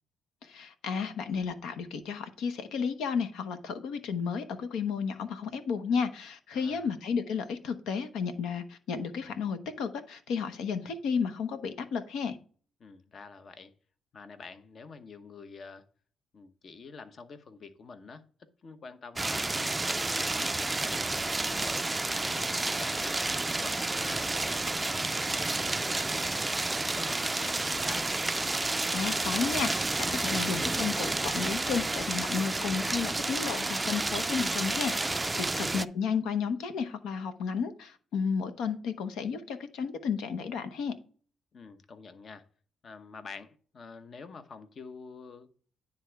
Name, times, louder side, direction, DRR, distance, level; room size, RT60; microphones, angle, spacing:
voice 1, 0.4-12.4 28.9-40.9, left 6 dB, 85° left, 9 dB, 0.9 m, -32 dB
voice 2, 6.5-6.9 12.8-13.7 14.1-15.8 16.3-20.9 21.4-23.2 23.6-26.6 26.9-28.1 35.4-35.9 41.5-42.4 42.8-45.5, left 4 dB, 50° left, 10 dB, 0.9 m, -47 dB
sound 1, 19.2-35.8, right 2 dB, 15° right, 0.3 m, -30 dB
9.9 x 3.5 x 4.6 m, 0.43 s
cardioid pair, 90°, 0 cm